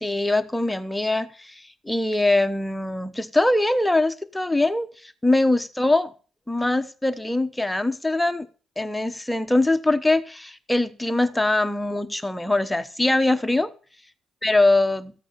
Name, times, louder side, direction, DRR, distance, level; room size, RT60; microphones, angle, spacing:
voice 1, 0.0-6.1 6.5-8.5 8.8-13.7 14.4-15.1, left 2 dB, 10° left, 1.0 m, -22 dB
14.0 x 8.6 x 6.8 m
cardioid pair, 90°, 0 cm